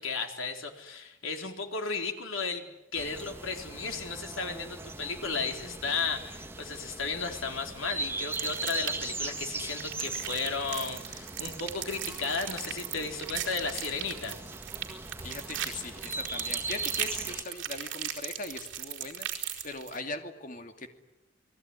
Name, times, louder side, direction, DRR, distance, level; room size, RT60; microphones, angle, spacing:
voice 1, 0.0-2.7 2.9-14.4, left 4 dB, 90° left, 4 dB, 3.9 m, -34 dB
sound 1, 2.9-17.4, right 3 dB, 10° right, 1.5 m, -40 dB
sound 2, 8.3-9.2 9.6-20.0, right 11 dB, 65° right, 4.4 m, -37 dB
voice 2, 15.2-21.0, left 3 dB, 40° left, 6 dB, 2.6 m, -40 dB
28.5 x 20.5 x 9.9 m, 0.93 s
head